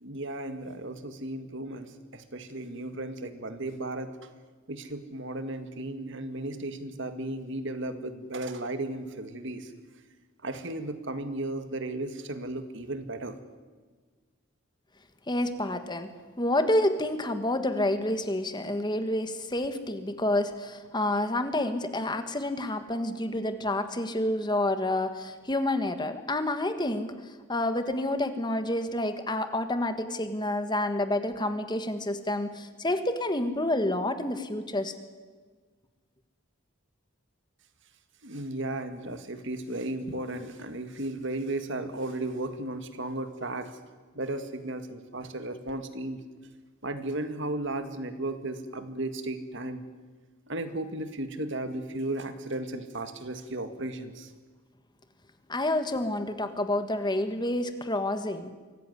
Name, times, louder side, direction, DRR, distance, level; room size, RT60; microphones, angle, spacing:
voice 1, 0.0-4.1 4.7-9.7 10.4-13.4 38.2-43.8 44.1-46.2 46.8-49.8 50.5-54.3, right 2 dB, 60° right, 9 dB, 2.0 m, -35 dB
voice 2, 15.3-16.1 16.4-34.9 55.5-58.5, left 1 dB, 20° left, 9 dB, 1.5 m, -29 dB
24.5 x 17.0 x 9.8 m, 1.4 s
head